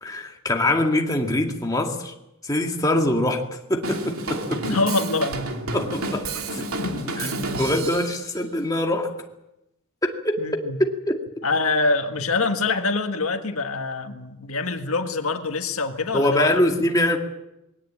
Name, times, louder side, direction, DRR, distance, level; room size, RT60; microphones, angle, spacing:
voice 1, 0.0-2.1 2.4-4.6 5.7-6.3 6.5-6.7 7.2-7.3 7.6-9.1 10.0-11.2 16.1-17.2, left 1 dB, 15° left, 2.1 m, -23 dB
Drum kit / Drum, 3.8-8.2, right 2 dB, 80° right, 2.8 m, -30 dB
voice 2, 4.6-5.5 6.8-7.6 10.4-10.8 11.4-16.6, left 3 dB, 80° left, 1.7 m, -25 dB
21.0 x 18.0 x 8.7 m
head